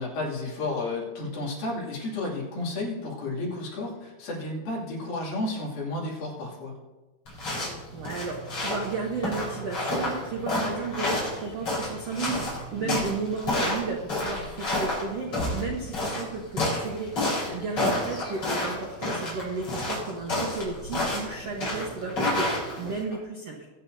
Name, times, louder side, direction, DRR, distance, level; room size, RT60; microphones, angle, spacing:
voice 1, 0.0-6.7 12.8-13.0 17.5-17.6 22.8-23.2, left 2 dB, 65° left, -4 dB, 4.2 m, -32 dB
sound 1, 7.3-23.0, left 1 dB, 35° left, 5.1 m, -30 dB
voice 2, 7.9-23.7, right 4 dB, 80° right, 0 dB, 1.4 m, -34 dB
23.0 x 8.7 x 2.7 m, 1.2 s
omnidirectional pair, 4.7 m